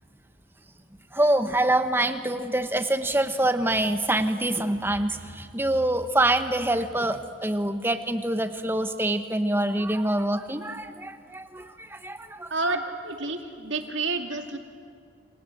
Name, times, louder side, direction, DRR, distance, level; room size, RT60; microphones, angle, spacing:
voice 1, 1.1-12.5, right 1 dB, 10° right, 9 dB, 1.1 m, -25 dB
voice 2, 12.5-14.6, right 3 dB, 75° right, 4 dB, 2.5 m, -29 dB
28.5 x 26.0 x 8.0 m, 2.2 s
head